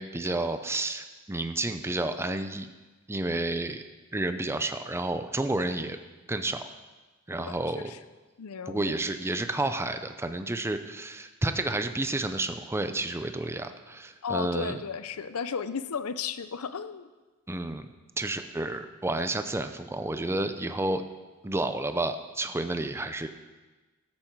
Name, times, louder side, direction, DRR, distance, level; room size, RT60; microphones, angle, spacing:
voice 1, 0.0-2.7 3.1-3.8 4.1-6.0 6.3-6.7 7.3-7.9 8.7-14.8 17.5-17.9 18.2-21.0 21.4-23.3, right 2 dB, 10° right, 8 dB, 0.6 m, -30 dB
voice 2, 7.4-8.0 8.4-8.9 14.2-17.1, left 6 dB, 80° left, 12 dB, 0.6 m, -34 dB
13.5 x 8.7 x 4.6 m, 1.2 s
head